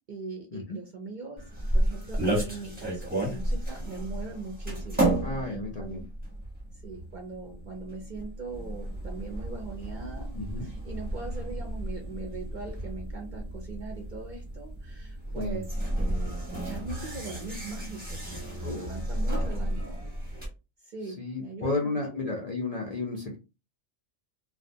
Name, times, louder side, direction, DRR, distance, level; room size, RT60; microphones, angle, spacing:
voice 1, 0.1-1.4 1.7-6.0 6.7-10.3 10.6-15.7 16.0-20.0 20.3-20.5 20.8-22.5, right 3 dB, 55° right, 1 dB, 0.5 m, -41 dB
sound 1, 1.4-20.5, right 1 dB, 10° right, 0.7 m, -32 dB
voice 2, 5.2-6.0 10.3-10.7 15.3-15.6 18.6-18.9 21.1-23.4, left 3 dB, 65° left, 1 dB, 0.4 m, -33 dB
2.3 x 2.1 x 2.6 m, 0.29 s
omnidirectional pair, 1.3 m